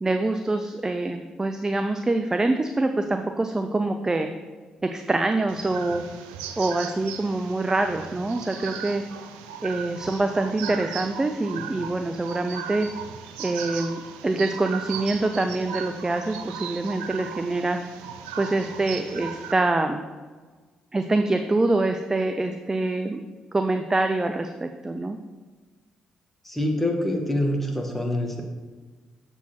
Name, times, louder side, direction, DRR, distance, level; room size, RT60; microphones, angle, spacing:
voice 1, 0.0-4.3 4.8-6.0 6.6-9.0 9.6-12.9 13.4-17.8 18.4-20.0 20.9-23.2 23.5-25.2, right 2 dB, 25° right, 6 dB, 0.6 m, -25 dB
sound 1, 5.5-19.5, right 8 dB, 90° right, 0.5 m, -37 dB
voice 2, 26.5-28.4, left 1 dB, 10° left, 1 dB, 1.8 m, -25 dB
7.1 x 4.6 x 5.9 m, 1.4 s
hypercardioid pair, 50°, 3 cm